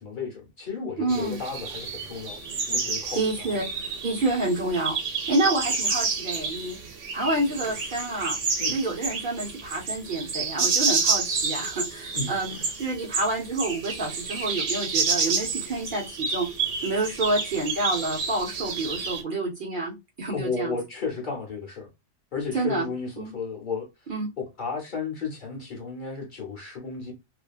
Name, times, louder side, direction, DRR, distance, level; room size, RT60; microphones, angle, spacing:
voice 1, 0.0-3.6 8.6-8.7 12.1-12.7 20.3-21.9 22.3-24.1 24.4-27.1, left 5 dB, 50° left, 0.8 m, -33 dB
voice 2, 1.0-1.4 3.2-3.6 4.0-5.0 5.3-6.8 7.1-8.4 8.7-16.5 16.8-20.8 22.5-22.9 23.2-23.3 24.1-24.3, right 2 dB, 50° right, 0.8 m, -28 dB
sound 1, 1.1-19.2, right 4 dB, 80° right, 1.1 m, -29 dB
2.6 x 2.4 x 2.3 m
omnidirectional pair, 1.2 m